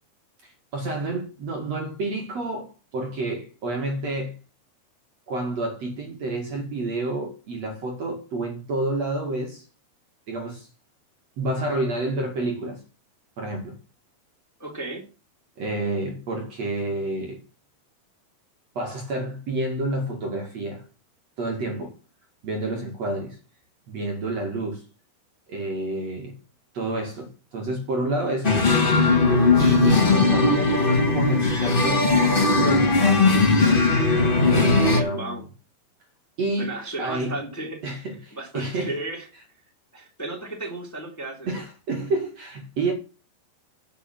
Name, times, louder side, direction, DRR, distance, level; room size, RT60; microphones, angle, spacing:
voice 1, 0.4-4.3 5.3-9.7 10.3-10.7 11.4-12.8 13.4-13.8 15.6-17.4 18.7-20.8 21.4-21.9 22.4-23.4 23.9-24.8 25.5-26.4 26.7-28.6 29.6-33.9 34.4-35.4 36.4-37.4 37.8-39.0 41.5-42.9, right 2 dB, 45° right, 2.9 m, -29 dB
voice 2, 14.6-15.0 34.6-35.4 36.6-37.8 38.3-39.2 39.9-41.6, right 2 dB, 5° left, 2.6 m, -34 dB
sound 1, 28.4-35.0, left 3 dB, 75° left, 0.5 m, -19 dB
10.5 x 6.5 x 7.6 m
omnidirectional pair, 4.6 m